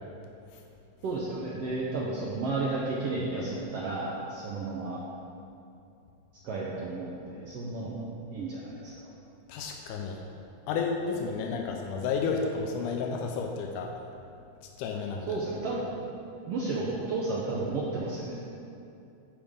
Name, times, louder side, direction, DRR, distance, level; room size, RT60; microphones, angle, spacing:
voice 1, 1.0-5.0 6.4-8.9 15.3-15.9 16.5-18.4, right 3 dB, 75° right, -5 dB, 1.4 m, -32 dB
voice 2, 9.5-10.2 10.7-13.9 14.8-15.4, left 5 dB, 85° left, 2 dB, 2.1 m, -31 dB
13.5 x 5.2 x 3.6 m, 2.6 s
omnidirectional pair, 3.6 m